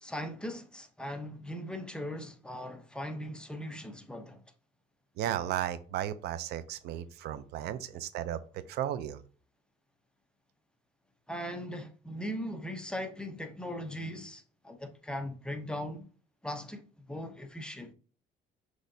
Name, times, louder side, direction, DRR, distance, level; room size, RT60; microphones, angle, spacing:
voice 1, 0.0-4.4 11.3-16.1 16.4-17.9, equal, 5° left, 0.7 m, -39 dB
voice 2, 5.2-9.2, right 11 dB, 75° right, 0.5 m, -35 dB
6.2 x 3.1 x 2.7 m
cardioid pair, 110°, 17 cm